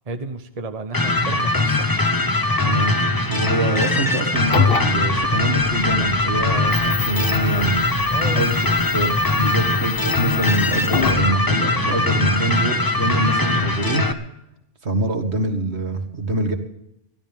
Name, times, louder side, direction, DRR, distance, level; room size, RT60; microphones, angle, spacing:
voice 1, 0.1-2.0 8.1-8.5, right 2 dB, 35° right, 6 dB, 1.1 m, -32 dB
sound 1, 0.9-14.1, left 2 dB, 20° left, 1.0 m, -21 dB
voice 2, 2.6-3.0 3.3-7.7 8.4-8.7 8.9-14.0 14.8-16.6, right 2 dB, 65° right, 6 dB, 2.3 m, -24 dB
sound 2, 4.4-11.3, left 6 dB, 55° left, 1.3 m, -27 dB
23.5 x 15.5 x 3.6 m, 0.80 s
omnidirectional pair, 1.2 m